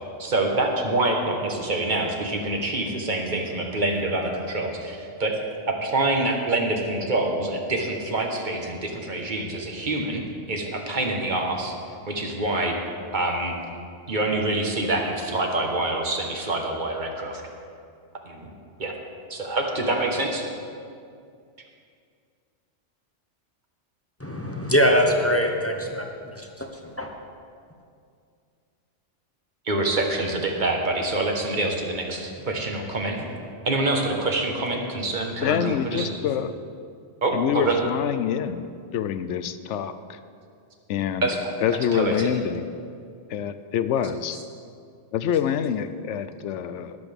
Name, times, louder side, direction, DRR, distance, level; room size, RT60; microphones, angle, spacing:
voice 1, 0.2-5.3 5.7-10.2 10.5-11.7 12.1-12.7 13.1-13.5 14.1-17.4 18.2-18.5 18.8-18.9 19.3-20.5 29.7-33.2 33.6-34.8 35.0-36.1 37.2-37.8 41.2-42.3 44.3-44.4, right 2 dB, 40° right, 2 dB, 1.4 m, -26 dB
voice 2, 24.2-26.1 26.3-26.7 27.0-27.1, equal, 15° left, 2 dB, 0.8 m, -22 dB
voice 3, 35.4-36.5 37.3-40.2 40.9-41.3 41.6-42.7 43.3-44.4 45.1-47.0, left 8 dB, 75° left, 12 dB, 0.9 m, -26 dB
21.5 x 7.9 x 3.5 m, 2.3 s
omnidirectional pair, 1.2 m